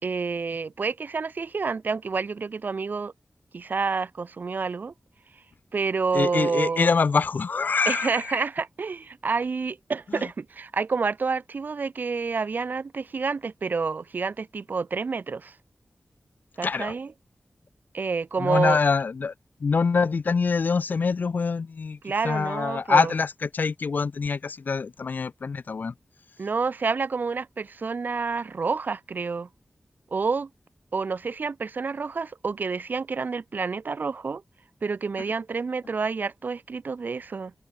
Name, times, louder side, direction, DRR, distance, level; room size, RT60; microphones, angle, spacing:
voice 1, 0.0-3.1 3.5-4.9 5.7-6.9 7.9-15.5 16.6-17.1 17.9-18.8 22.0-23.1 26.4-29.5 30.1-30.5 30.9-34.4 34.8-37.5, right 4 dB, 75° right, 2.3 m, -28 dB
voice 2, 6.1-8.5 10.1-10.3 16.6-16.9 18.4-19.3 19.6-25.9, left 5 dB, 75° left, 0.7 m, -25 dB
open air
cardioid pair, 45°, 3 cm